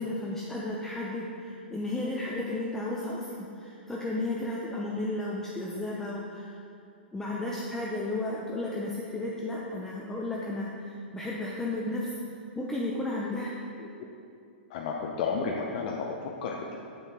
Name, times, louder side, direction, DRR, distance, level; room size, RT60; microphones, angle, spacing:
voice 1, 0.0-6.6 7.1-12.1 12.6-13.5, left 2 dB, 10° left, -4 dB, 0.6 m, -33 dB
voice 2, 14.7-16.8, left 5 dB, 55° left, -1 dB, 0.6 m, -32 dB
7.8 x 5.7 x 2.9 m, 2.5 s
hypercardioid pair, 120°, 6 cm